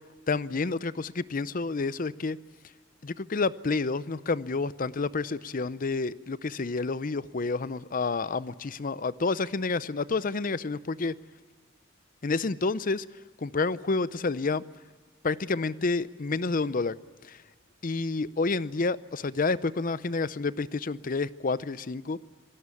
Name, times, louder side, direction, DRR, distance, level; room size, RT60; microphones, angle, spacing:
voice 1, 0.3-2.4 3.0-11.1 12.2-13.1 13.4-14.6 15.2-17.0 17.2-17.4 17.8-22.2, left 3 dB, 45° left, 0.6 m, -29 dB
27.0 x 17.5 x 8.5 m
head